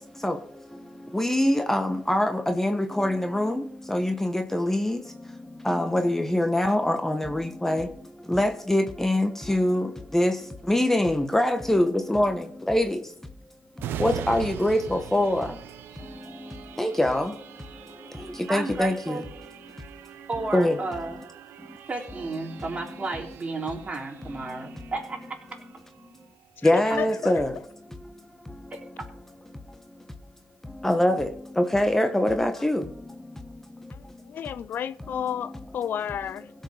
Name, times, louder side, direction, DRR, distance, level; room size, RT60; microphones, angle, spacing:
voice 1, 1.1-5.0 5.6-7.9 8.3-10.4 10.7-13.0 14.0-15.5 16.8-17.3 18.5-19.2 20.5-20.8 26.6-27.5 30.8-31.3 31.6-32.8, left 1 dB, 10° left, 1.2 m, -23 dB
sound 1, 13.8-27.1 27.6-27.7, right 11 dB, 75° right, 0.7 m, -42 dB
voice 2, 18.5-19.3 20.3-21.2 21.9-25.2 26.9-27.3 28.7-28.8, right 3 dB, 35° right, 3.6 m, -33 dB
voice 3, 26.6-27.3 33.9-36.5, left 9 dB, 60° left, 0.4 m, -32 dB
16.5 x 5.6 x 6.4 m
supercardioid pair, 55°, 4 cm